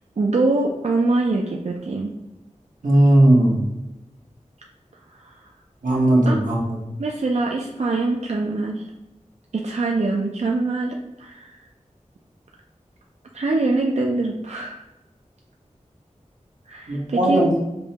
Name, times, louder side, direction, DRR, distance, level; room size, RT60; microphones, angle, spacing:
voice 1, 0.2-2.1 5.2-5.4 6.3-6.5 7.0-8.8 9.5-11.6 13.3-14.8 16.7-17.4, right 3 dB, 60° right, 0 dB, 0.4 m, -24 dB
voice 2, 2.8-3.6 5.8-6.8 16.9-17.5, right 1 dB, 85° right, -5 dB, 1.1 m, -17 dB
5.3 x 2.2 x 2.8 m, 1.0 s
wide cardioid pair, 50°, 13 cm